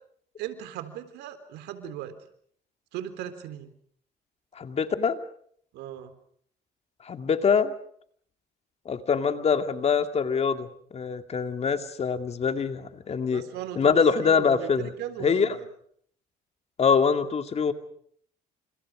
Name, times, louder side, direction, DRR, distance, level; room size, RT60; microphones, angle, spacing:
voice 1, 0.4-2.2 2.9-3.7 5.7-6.1 13.3-15.6, right 11 dB, 90° right, 10 dB, 3.9 m, -38 dB
voice 2, 4.6-5.2 7.0-7.7 8.9-10.7 10.9-13.4 13.8-14.9 15.2-15.6 16.8-17.7, left 6 dB, 40° left, 8 dB, 2.4 m, -24 dB
29.5 x 27.5 x 5.0 m, 0.63 s
cardioid pair, 110°, 17 cm